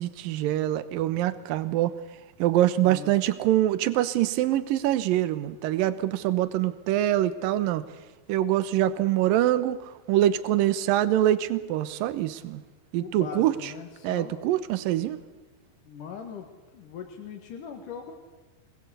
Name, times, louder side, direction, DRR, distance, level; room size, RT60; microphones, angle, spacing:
voice 1, 0.0-1.9 2.4-7.8 8.3-9.8 10.1-12.6 12.9-13.7 14.0-15.2, right 13 dB, 75° right, 13 dB, 2.7 m, -24 dB
voice 2, 2.8-3.1 13.0-14.4 15.8-16.5 16.7-18.1, left 7 dB, 65° left, 3 dB, 3.2 m, -40 dB
25.5 x 20.0 x 8.2 m, 1.2 s
omnidirectional pair, 4.2 m